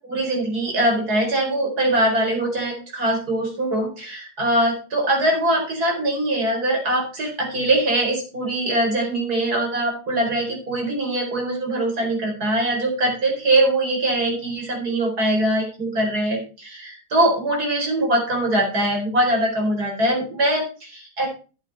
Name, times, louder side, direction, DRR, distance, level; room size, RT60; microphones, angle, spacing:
voice 1, 0.1-21.3, right 1 dB, 60° right, 0 dB, 5.0 m, -22 dB
12.5 x 8.4 x 4.2 m, 0.35 s
omnidirectional pair, 1.9 m